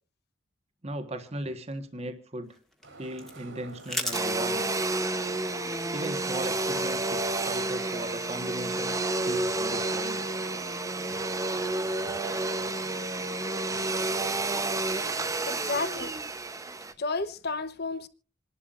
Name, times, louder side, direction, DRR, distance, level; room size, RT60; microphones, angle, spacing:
voice 1, 0.8-2.5 3.0-4.6 5.9-10.2 11.1-11.2, right 1 dB, 35° right, 1.4 m, -37 dB
sound 1, 2.4-9.4, equal, ahead, 1.7 m, -42 dB
sound 2, 2.8-16.1, right 2 dB, 70° right, 3.1 m, -48 dB
Domestic sounds home sounds, 4.1-16.9, right 2 dB, 15° right, 0.9 m, -30 dB
voice 2, 15.5-16.1 17.0-18.1, left 3 dB, 55° left, 1.0 m, -31 dB
27.5 x 11.5 x 2.5 m
head